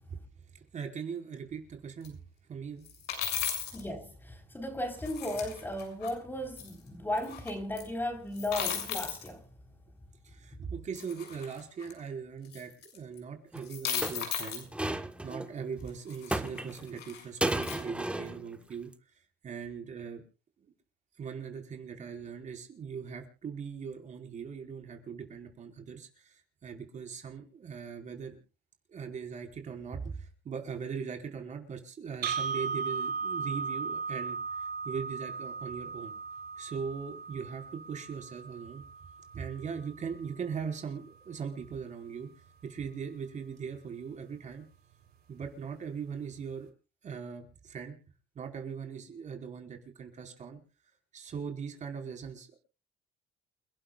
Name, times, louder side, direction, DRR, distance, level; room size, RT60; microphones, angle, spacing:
voice 1, 0.5-2.2 2.5-2.9 10.2-15.0 15.2-18.9 19.4-20.2 20.6-20.7 21.2-28.4 28.9-36.1 36.6-38.8 39.3-42.3 42.6-44.6 45.3-46.7 47.0-48.0 48.3-50.6 51.1-52.5, right 6 dB, 45° right, 4.7 m, -40 dB
sound 1, 2.0-2.1 2.9-3.8 5.1-6.1 6.6-6.7 7.2-7.5 7.8-7.9 8.4-9.3 11.0-11.9 12.5-13.2 13.6-14.6 15.9-17.8, left 9 dB, 75° left, 6.9 m, -36 dB
voice 2, 3.7-9.4, left 1 dB, 10° left, 4.1 m, -35 dB
sound 2, 13.5-13.6 14.0-15.5 16.3-17.0 17.4-18.5 18.7-18.9, right 1 dB, 5° right, 1.4 m, -33 dB
sound 3, 32.2-40.3, right 5 dB, 70° right, 3.4 m, -37 dB
29.5 x 12.0 x 2.4 m
cardioid pair, 110°, 17 cm